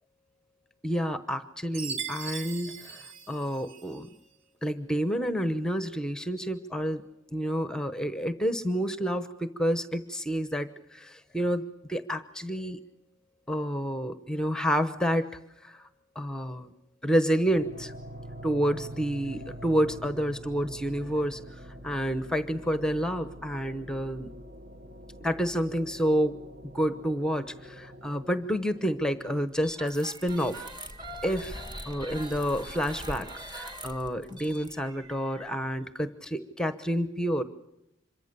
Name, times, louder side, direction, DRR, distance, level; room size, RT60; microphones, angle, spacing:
voice 1, 0.8-4.1 4.6-7.0 7.3-12.8 13.5-15.9 16.2-16.7 17.0-17.9 18.4-24.3 25.2-30.6 31.2-37.4, equal, 5° left, 11 dB, 0.9 m, -29 dB
Chime, 1.7-4.1, right 6 dB, 65° right, 1.6 m, -39 dB
sound 1, 17.5-29.4, equal, 45° right, 1.4 m, -45 dB
sound 2, 29.6-35.5, right 1 dB, 20° right, 2.3 m, -42 dB
26.5 x 23.5 x 6.8 m, 0.86 s
head